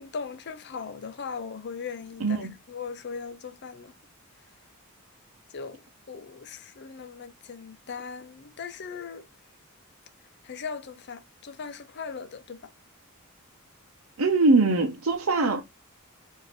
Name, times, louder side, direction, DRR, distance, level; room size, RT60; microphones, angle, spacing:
voice 1, 0.0-3.9 5.5-5.8 6.1-9.2 10.4-12.7, left 5 dB, 55° left, 0.6 m, -39 dB
voice 2, 2.2-2.5 14.2-15.6, right 3 dB, 70° right, 0.7 m, -22 dB
4.9 x 2.7 x 3.2 m
head